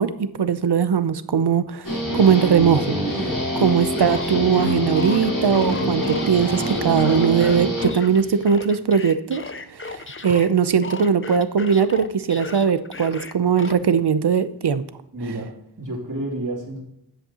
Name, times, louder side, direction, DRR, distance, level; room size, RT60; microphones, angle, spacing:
voice 1, 0.0-9.4 9.7-14.8, right 7 dB, 80° right, 14 dB, 0.7 m, -20 dB
Guitar, 1.8-8.4, equal, 55° left, 3.6 m, -25 dB
sound 1, 4.0-10.5 10.8-13.7, left 4 dB, 30° left, 0.7 m, -36 dB
voice 2, 15.1-15.5 15.8-16.8, right 1 dB, 50° right, -2 dB, 3.0 m, -29 dB
9.9 x 8.1 x 2.9 m, 0.77 s
wide cardioid pair, 65°, 40 cm